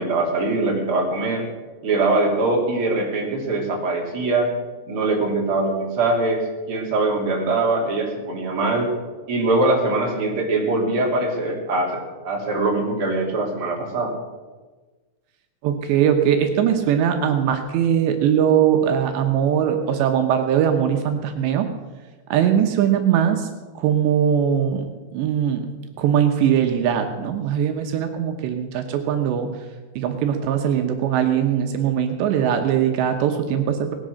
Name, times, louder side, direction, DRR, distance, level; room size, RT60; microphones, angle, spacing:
voice 1, 0.0-1.4 1.8-4.5 4.9-8.9 9.3-14.1, right 2 dB, 35° right, 0 dB, 3.5 m, -22 dB
voice 2, 15.6-21.7 22.3-23.5 23.8-25.7 26.0-29.5 30.0-34.0, right 9 dB, 80° right, 6 dB, 3.2 m, -20 dB
19.0 x 10.5 x 6.5 m, 1.3 s
omnidirectional pair, 5.0 m